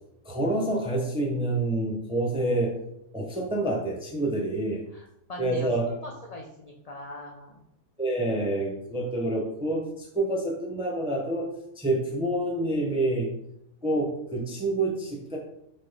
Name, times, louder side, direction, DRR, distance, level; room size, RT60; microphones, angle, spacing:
voice 1, 0.2-2.7 3.1-4.8 5.4-5.9 8.0-11.5 11.8-13.3 13.8-15.4, right 1 dB, 10° right, -2 dB, 0.3 m, -27 dB
voice 2, 4.9-7.6, left 1 dB, 70° left, 0 dB, 0.3 m, -41 dB
4.1 x 3.8 x 3.3 m, 0.81 s
omnidirectional pair, 1.4 m